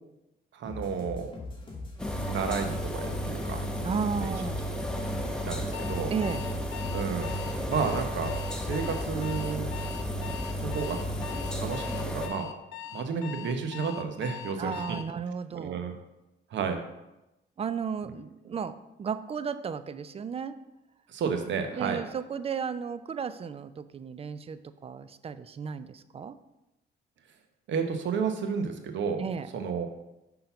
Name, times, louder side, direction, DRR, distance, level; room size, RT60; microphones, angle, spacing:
voice 1, 0.5-1.3 2.3-3.6 4.2-4.3 5.5-6.1 6.9-7.4 7.7-8.3 8.6-9.7 10.6-11.0 11.5-12.5 12.9-14.7 15.5-15.9 16.5-16.8 21.1-22.0 27.7-29.2 29.5-29.9, right 6 dB, 70° right, 6 dB, 0.9 m, -31 dB
sound 1, 0.6-11.6, left 2 dB, 25° left, 1.7 m, -41 dB
sound 2, 2.0-12.3, equal, 5° left, 0.8 m, -33 dB
voice 2, 3.8-4.6 6.1-6.4 14.6-15.8 17.6-20.6 21.7-26.4 29.2-29.5, right 6 dB, 30° right, 13 dB, 0.4 m, -34 dB
Alarm, 5.7-15.1, left 10 dB, 90° left, 0.5 m, -41 dB
5.7 x 3.8 x 5.7 m, 0.95 s
cardioid pair, 90°, 20 cm